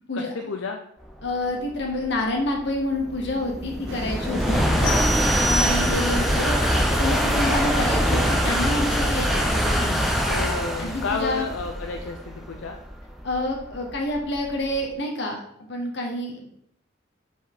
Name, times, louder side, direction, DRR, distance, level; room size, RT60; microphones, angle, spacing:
voice 1, 0.1-0.8 4.8-5.2 10.3-12.8, left 4 dB, 80° left, 3 dB, 0.5 m, -31 dB
voice 2, 1.2-5.0 5.4-6.6 7.0-10.2 10.8-11.5 13.2-15.4 15.7-16.5, left 1 dB, 60° left, 1 dB, 1.3 m, -28 dB
sound 1, 1.4-14.7, equal, ahead, 0.5 m, -24 dB
sound 2, 3.9-9.7, right 2 dB, 80° right, 1.1 m, -35 dB
sound 3, 4.8-6.4, right 1 dB, 35° left, 1.8 m, -28 dB
5.3 x 5.0 x 3.8 m, 0.72 s
head